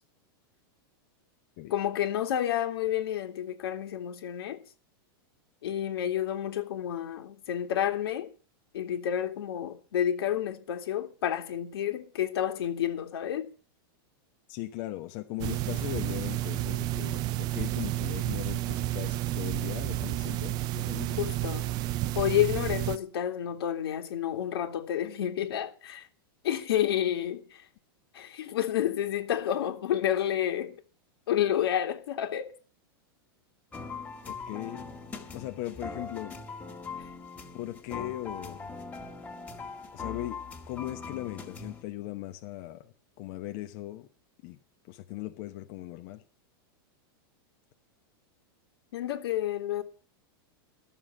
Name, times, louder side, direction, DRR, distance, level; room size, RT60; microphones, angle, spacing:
voice 1, 1.7-4.6 5.6-8.3 8.7-13.5 21.2-21.7 22.1-26.1 26.4-27.6 28.1-30.8 31.3-32.5 48.9-49.8, left 10 dB, 80° left, 2.5 m, -30 dB
voice 2, 14.5-21.3 34.3-34.9 35.3-36.4 37.5-38.7 39.9-40.4 40.7-44.1 44.4-44.6 44.9-46.2, left 16 dB, 45° left, 1.0 m, -39 dB
sound 1, 15.4-23.0, right 15 dB, 30° right, 0.5 m, -31 dB
sound 2, 33.7-41.8, left 4 dB, 10° left, 2.0 m, -41 dB
13.0 x 7.3 x 8.6 m
supercardioid pair, 155°, 13 cm